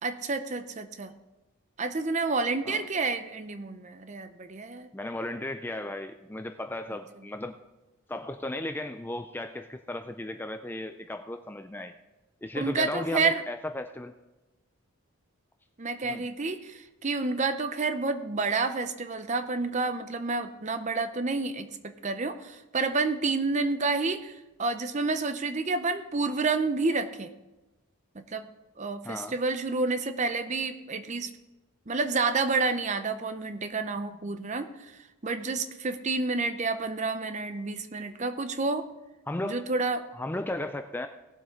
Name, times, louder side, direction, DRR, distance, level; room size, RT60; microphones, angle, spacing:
voice 1, 0.0-1.1 1.8-4.9 12.6-13.4 15.8-21.7 22.0-27.3 28.1-28.5 28.8-31.3 31.9-34.7 35.2-38.9 39.4-40.0, right 3 dB, 30° right, 10 dB, 0.6 m, -29 dB
voice 2, 4.9-7.6 8.1-11.9 12.4-14.1 16.0-16.3 29.0-29.3 39.3-39.7 40.1-41.1, left 1 dB, 10° left, 7 dB, 0.3 m, -35 dB
18.0 x 7.6 x 3.7 m, 1.0 s
head